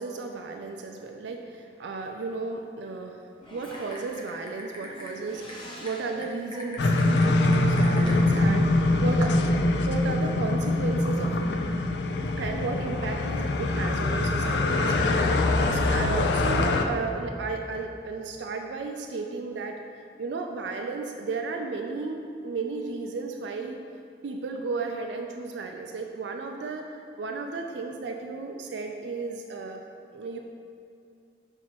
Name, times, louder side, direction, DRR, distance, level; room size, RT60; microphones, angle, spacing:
voice 1, 0.0-9.4 9.9-11.5 12.4-19.8 20.2-23.8 24.2-29.8 30.1-30.4, right 3 dB, 80° right, 3 dB, 0.4 m, -34 dB
Typing, 3.4-8.2, left 1 dB, 25° left, 0.7 m, -42 dB
sound 1, 6.8-16.8, left 2 dB, 75° left, 0.4 m, -24 dB
6.0 x 5.7 x 3.0 m, 2.5 s
head